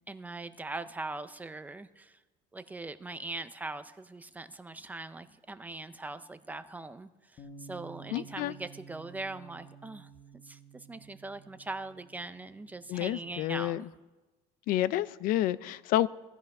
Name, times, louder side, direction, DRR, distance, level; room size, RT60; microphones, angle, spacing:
voice 1, 0.1-2.2 2.5-10.1 10.4-13.9, right 2 dB, 10° right, 11 dB, 0.4 m, -41 dB
Bass guitar, 7.4-13.6, right 5 dB, 30° left, 0.9 m, -52 dB
voice 2, 8.1-8.5 12.9-13.8 14.7-16.1, left 14 dB, 55° left, 17 dB, 0.4 m, -29 dB
17.0 x 12.5 x 5.3 m, 1.1 s
cardioid pair, 175°, 17 cm